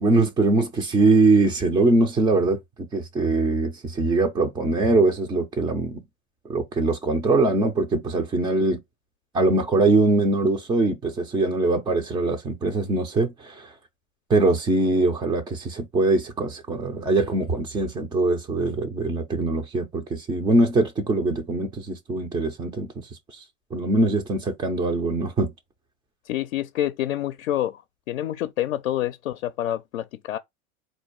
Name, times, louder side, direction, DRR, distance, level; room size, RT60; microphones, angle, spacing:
voice 1, 0.0-6.0 6.5-8.8 9.3-13.7 14.3-23.4 23.7-25.5, right 2 dB, 10° right, 0.4 m, -22 dB
voice 2, 26.3-27.8 28.1-30.4, left 12 dB, 55° left, 0.6 m, -27 dB
4.1 x 2.7 x 4.5 m
figure-of-eight pair, 85°, 42 cm